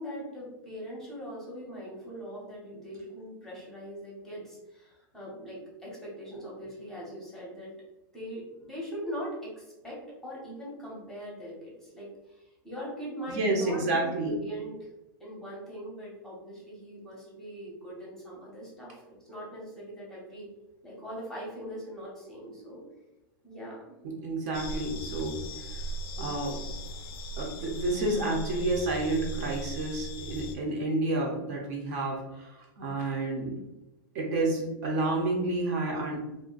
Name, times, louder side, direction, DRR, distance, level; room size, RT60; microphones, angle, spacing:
voice 1, 0.0-7.7 8.1-14.9 15.2-20.5 20.8-22.8 23.4-23.8, equal, 5° left, -6 dB, 0.8 m, -41 dB
voice 2, 13.3-14.4 24.0-25.8 26.2-26.6 27.4-33.5 34.1-36.2, right 2 dB, 45° right, -1 dB, 0.7 m, -30 dB
sound 1, 24.5-30.6, right 1 dB, 80° left, 0.5 m, -38 dB
2.5 x 2.2 x 3.8 m, 0.98 s
supercardioid pair, 160°, 12 cm